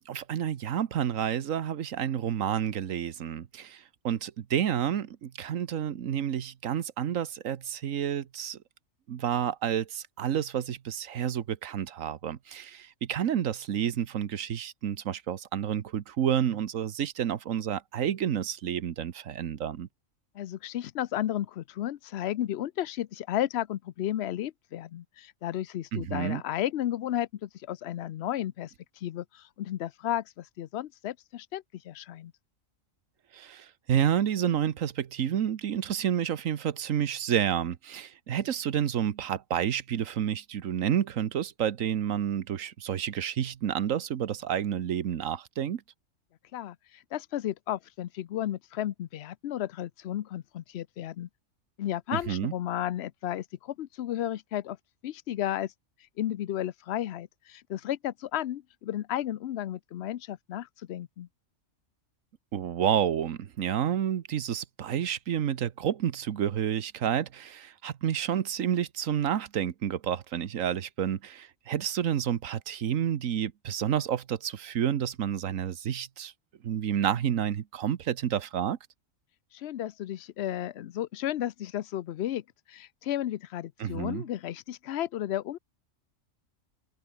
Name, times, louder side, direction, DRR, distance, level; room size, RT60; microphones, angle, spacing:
voice 1, 0.0-8.6 9.1-19.9 25.9-26.4 33.3-45.8 52.1-52.5 62.5-76.3 76.6-78.8 83.8-84.2, right 9 dB, 75° right, 1.4 m, -30 dB
voice 2, 20.3-28.7 29.0-32.3 46.5-51.3 51.8-54.8 55.0-55.7 56.2-61.3 79.5-82.4 82.7-85.6, left 12 dB, 60° left, 0.8 m, -33 dB
omnidirectional pair, 1.4 m